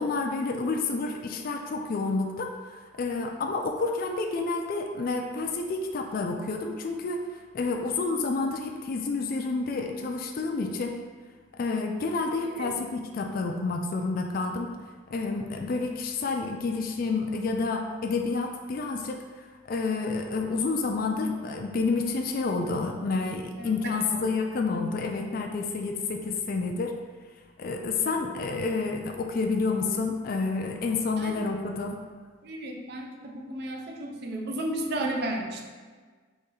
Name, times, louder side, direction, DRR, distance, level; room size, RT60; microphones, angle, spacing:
voice 1, 0.0-2.5 3.0-7.2 7.5-11.0 11.6-14.8 15.1-26.9 27.6-32.0, left 3 dB, 45° left, 2 dB, 0.3 m, -29 dB
voice 2, 32.5-35.6, right 1 dB, 50° right, 2 dB, 0.5 m, -33 dB
4.1 x 3.1 x 3.8 m, 1.5 s
head